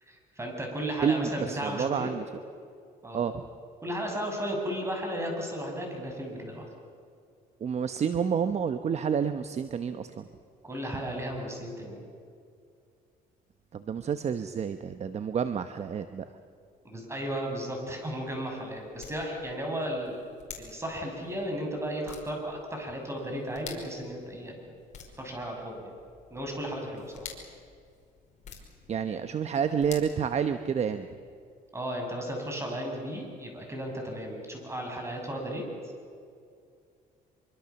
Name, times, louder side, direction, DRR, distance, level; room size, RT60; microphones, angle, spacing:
voice 1, 0.1-2.1 3.0-3.2 3.8-6.7 10.6-12.0 16.8-20.2 20.6-24.7 25.2-25.9 26.3-27.3 31.7-35.7, equal, 15° right, 2 dB, 7.1 m, -34 dB
voice 2, 1.0-2.2 3.1-3.4 7.6-10.2 13.7-16.2 28.9-31.1, right 7 dB, 40° right, 10 dB, 1.0 m, -29 dB
sound 1, 18.1-31.0, left 6 dB, 45° left, 5.1 m, -50 dB
25.5 x 24.5 x 7.1 m, 2.3 s
cardioid pair, 110°, 17 cm